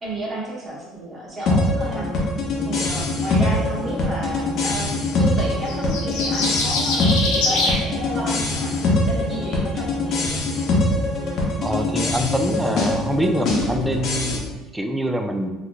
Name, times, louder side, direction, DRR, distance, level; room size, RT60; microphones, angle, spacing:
voice 1, 0.0-2.1 2.6-10.4, right 1 dB, 25° right, -6 dB, 1.2 m, -32 dB
sound 1, 1.5-14.4, left 2 dB, 50° left, 0.8 m, -23 dB
sound 2, 5.7-7.8, left 3 dB, 90° left, 0.7 m, -23 dB
voice 2, 11.6-15.5, equal, 5° right, 5 dB, 0.3 m, -24 dB
3.7 x 3.0 x 2.2 m, 1.1 s
cardioid pair, 125°, 0 cm